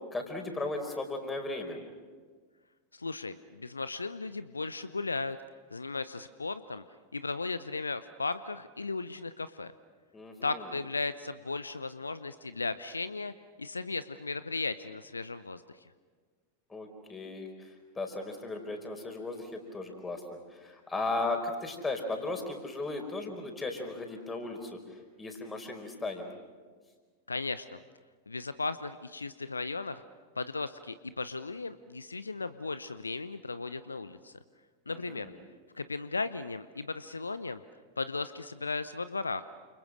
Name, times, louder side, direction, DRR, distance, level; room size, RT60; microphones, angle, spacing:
voice 1, 0.1-1.8 10.1-10.7 16.7-20.2 20.5-24.8 25.2-26.3 34.9-35.4, left 2 dB, 15° left, 4 dB, 5.1 m, -36 dB
voice 2, 2.9-5.4 5.7-6.8 7.1-9.7 10.4-13.3 13.6-15.9 27.3-27.8 28.3-30.0 30.4-34.3 34.9-35.3 35.7-37.6 38.0-39.4, left 3 dB, 80° left, 14 dB, 0.7 m, -36 dB
29.5 x 28.0 x 6.4 m, 1.5 s
figure-of-eight pair, 90°, 0 cm